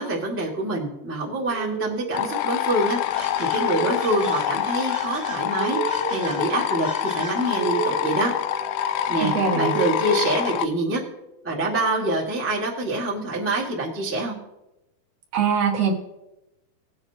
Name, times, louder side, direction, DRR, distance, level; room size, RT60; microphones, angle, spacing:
voice 1, 0.0-8.3 9.1-11.0 11.4-14.4, right 1 dB, 15° right, -5 dB, 0.4 m, -26 dB
sound 1, 1.5-11.2, right 6 dB, 80° right, 2.7 m, -33 dB
sound 2, 2.1-10.7, left 11 dB, 85° left, 2.4 m, -26 dB
sound 3, 2.8-8.0, right 3 dB, 45° right, 0.9 m, -41 dB
voice 2, 9.2-9.8 15.3-15.9, right 6 dB, 65° right, -1 dB, 2.3 m, -22 dB
18.5 x 7.9 x 2.9 m, 0.93 s
omnidirectional pair, 4.4 m